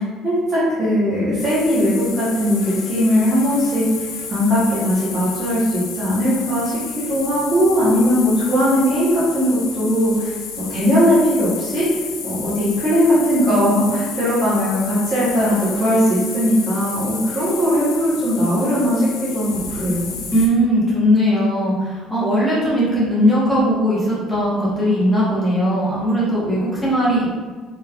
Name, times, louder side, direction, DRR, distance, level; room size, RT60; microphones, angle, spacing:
voice 1, 0.0-6.8 7.1-11.8 12.2-20.2, equal, 25° right, -11 dB, 0.9 m, -19 dB
sound 1, 1.4-20.5, left 6 dB, 85° left, 0.5 m, -32 dB
voice 2, 20.3-27.3, equal, 5° left, -9 dB, 1.0 m, -18 dB
3.3 x 3.2 x 2.3 m, 1.5 s
cardioid pair, 175°, 0 cm